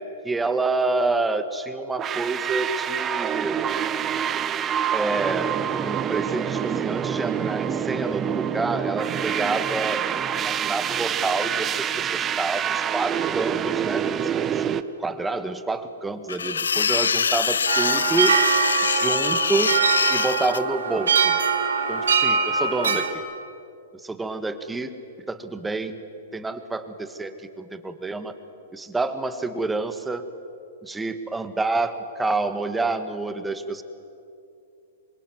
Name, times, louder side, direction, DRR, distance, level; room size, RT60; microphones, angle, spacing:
voice 1, 0.0-3.6 4.9-10.1 10.4-14.3 15.0-18.4 18.8-19.8 20.1-21.4 21.9-23.2 24.0-24.9 25.3-26.0 26.3-28.3 28.7-30.2 30.8-33.8, right 3 dB, 10° right, 9 dB, 1.9 m, -28 dB
sound 1, 2.0-14.8, right 9 dB, 25° right, 1.1 m, -26 dB
sound 2, 16.3-20.6, left 6 dB, 85° left, 0.6 m, -24 dB
sound 3, 17.7-23.1, right 6 dB, 80° right, 2.3 m, -23 dB
26.5 x 22.5 x 9.7 m, 2.6 s
hypercardioid pair, 115°, 0 cm